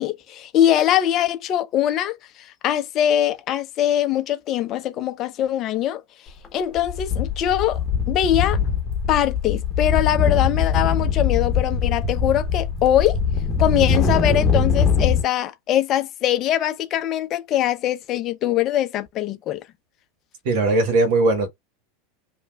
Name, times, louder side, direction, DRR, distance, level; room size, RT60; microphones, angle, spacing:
voice 1, 0.0-6.0 6.5-7.8 8.1-8.6 9.1-13.2 13.6-19.6, left 11 dB, 45° left, 0.6 m, -22 dB
sound 1, 6.3-6.5 6.8-15.2, left 6 dB, 25° left, 0.9 m, -22 dB
voice 2, 20.4-21.5, right 2 dB, 65° right, 1.4 m, -19 dB
3.2 x 2.3 x 2.3 m
hypercardioid pair, 95°, 0 cm